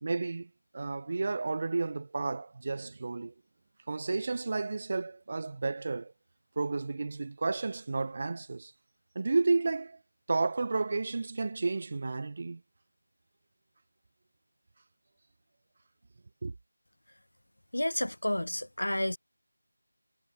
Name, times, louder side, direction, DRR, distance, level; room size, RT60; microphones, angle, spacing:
voice 1, 0.0-3.3 3.9-6.1 6.6-8.7 9.1-10.0 10.3-12.6 16.4-16.5, right 3 dB, 35° right, 1.0 m, -32 dB
voice 2, 17.7-19.2, left 1 dB, 75° left, 0.5 m, -30 dB
figure-of-eight pair, 165°, 0 cm